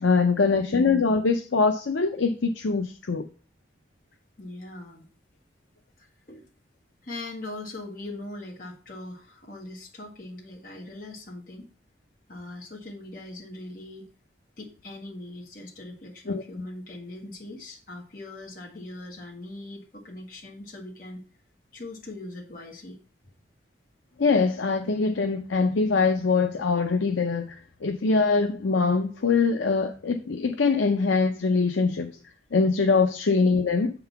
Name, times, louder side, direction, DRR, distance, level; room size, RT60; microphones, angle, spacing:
voice 1, 0.0-3.3 16.3-16.4 24.2-32.1 32.5-33.9, left 4 dB, 80° left, 0.6 m, -23 dB
voice 2, 0.6-0.9 4.4-5.1 6.0-6.5 7.0-11.7 12.3-14.1 14.6-21.2 21.7-23.0 33.0-33.1, left 2 dB, 45° left, 1.5 m, -41 dB
7.6 x 3.9 x 5.7 m
head